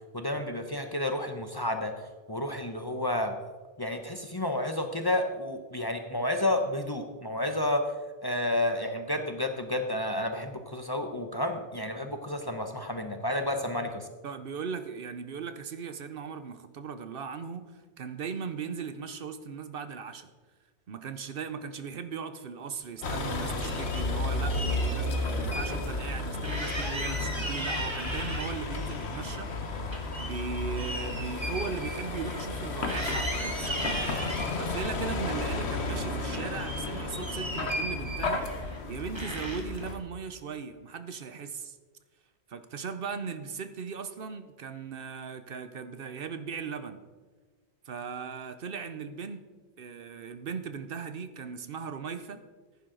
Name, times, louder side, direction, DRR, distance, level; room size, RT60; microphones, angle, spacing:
voice 1, 0.1-1.9 2.3-3.4 3.8-7.9 8.2-14.1, left 1 dB, 25° left, 5 dB, 0.8 m, -30 dB
voice 2, 14.2-20.3 20.9-41.8 42.5-47.0 47.8-49.4 49.8-52.4, right 6 dB, 60° right, 11 dB, 0.9 m, -38 dB
Vehicle, 23.0-40.0, left 2 dB, 75° left, 1.4 m, -33 dB
sound 1, 23.0-24.1 24.5-25.7 26.0-26.1 26.4-28.8 29.2-32.6 32.9-34.5 35.1-36.0 36.3-38.8 39.2-39.8, right 1 dB, 25° right, 1.7 m, -37 dB
14.5 x 10.5 x 3.8 m, 1.4 s
omnidirectional pair, 1.1 m